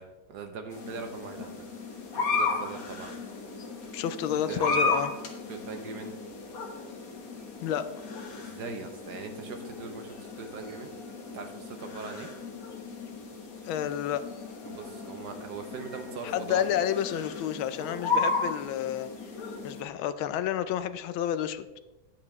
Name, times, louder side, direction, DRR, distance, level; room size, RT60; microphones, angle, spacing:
voice 1, 0.0-3.2 4.5-4.9 5.5-6.1 8.4-10.9 11.3-12.3 14.6-16.7, right 5 dB, 65° right, 6 dB, 1.2 m, -41 dB
sound 1, 0.7-19.8, left 3 dB, 45° left, 1.7 m, -35 dB
voice 2, 3.9-5.1 7.6-7.9 13.6-14.3 16.2-19.1 19.6-21.7, left 10 dB, 80° left, 12 dB, 1.4 m, -30 dB
10.0 x 8.6 x 3.5 m, 1.0 s
omnidirectional pair, 2.3 m